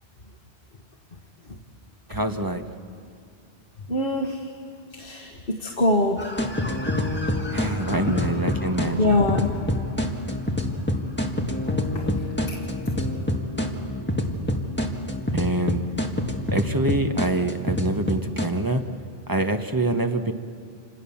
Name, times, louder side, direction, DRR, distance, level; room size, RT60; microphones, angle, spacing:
voice 1, 2.1-2.6 7.5-9.1 15.3-15.8 16.5-18.8 19.3-20.3, right 2 dB, 20° right, 6 dB, 1.2 m, -25 dB
voice 2, 3.9-4.5 5.0-6.3 9.0-9.5 11.7-12.1 12.5-12.6, left 2 dB, 60° left, 2 dB, 1.8 m, -24 dB
sound 1, 6.2-18.5, left 1 dB, 10° left, 1.8 m, -26 dB
28.0 x 27.0 x 7.2 m, 2.3 s
omnidirectional pair, 1.0 m